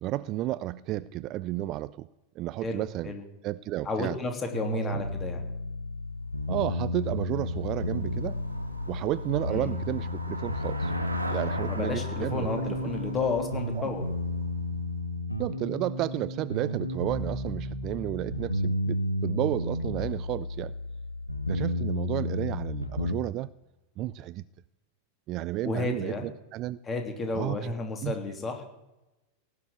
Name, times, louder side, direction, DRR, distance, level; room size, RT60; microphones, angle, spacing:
voice 1, 0.0-2.1 2.4-3.1 3.4-4.2 4.8-5.0 6.5-8.4 8.9-10.9 11.3-12.5 13.8-13.9 15.4-20.7 21.5-23.5 24.0-24.4 25.3-26.8 27.3-27.6 28.0-28.1, right 15 dB, 35° right, 0.4 m, -32 dB
voice 2, 2.6-3.2 3.8-5.4 9.5-9.7 11.7-14.1 25.6-26.2 26.8-28.6, left 3 dB, 20° left, 3.1 m, -32 dB
sound 1, 4.5-23.2, left 1 dB, 90° left, 1.1 m, -32 dB
Traffic noise roadway noise / Bicycle, 6.1-15.3, right 1 dB, 85° right, 1.8 m, -40 dB
17.5 x 6.7 x 9.4 m
figure-of-eight pair, 90°, 0 cm